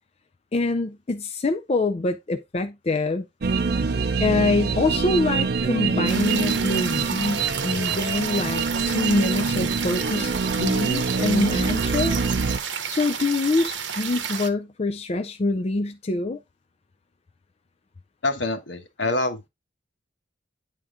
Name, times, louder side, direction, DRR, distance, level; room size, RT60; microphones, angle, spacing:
voice 1, 0.5-3.3 4.2-12.2 12.9-16.4, left 2 dB, 35° left, 0.5 m, -25 dB
sound 1, 3.4-12.6, right 4 dB, 55° right, 0.6 m, -25 dB
sound 2, 6.1-14.5, right 7 dB, 80° right, 0.9 m, -31 dB
voice 2, 18.2-19.5, left 2 dB, 75° left, 1.3 m, -26 dB
9.3 x 3.7 x 3.6 m
head